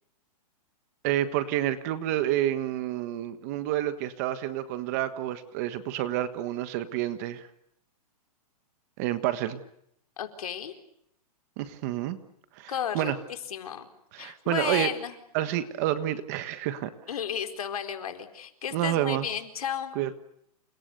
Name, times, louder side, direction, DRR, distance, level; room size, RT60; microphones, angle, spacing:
voice 1, 1.0-7.5 9.0-9.6 11.6-12.2 12.6-13.2 14.1-14.9 15.3-16.9 18.7-19.3 19.9-20.1, right 12 dB, 25° right, 11 dB, 1.4 m, -29 dB
voice 2, 10.2-10.7 12.7-13.9 14.2-15.1 17.1-20.0, left 8 dB, 65° left, 6 dB, 4.4 m, -33 dB
29.5 x 28.0 x 6.8 m, 0.73 s
hypercardioid pair, 175°, 20 cm